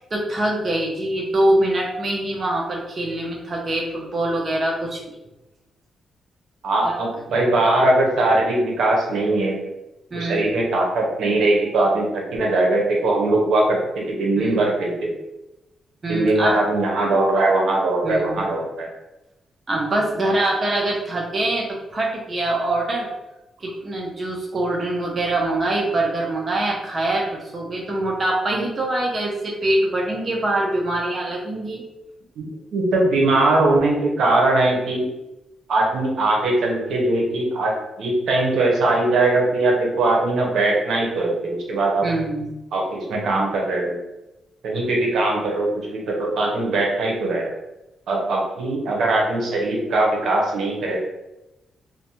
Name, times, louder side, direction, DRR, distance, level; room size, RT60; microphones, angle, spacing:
voice 1, 0.1-5.0 6.8-6.9 7.3-7.4 10.1-10.5 14.4-14.6 16.0-16.6 18.0-18.5 19.7-23.1 23.6-31.8 42.0-42.5, right 1 dB, 35° right, -1 dB, 0.4 m, -24 dB
voice 2, 6.6-9.6 10.2-15.1 16.1-18.9 32.4-32.5 32.7-35.1 35.7-42.1 42.7-44.0 44.6-47.5 48.1-51.0, right 2 dB, 80° right, -1 dB, 0.7 m, -20 dB
2.5 x 2.0 x 2.8 m, 0.97 s
cardioid pair, 105°, 0 cm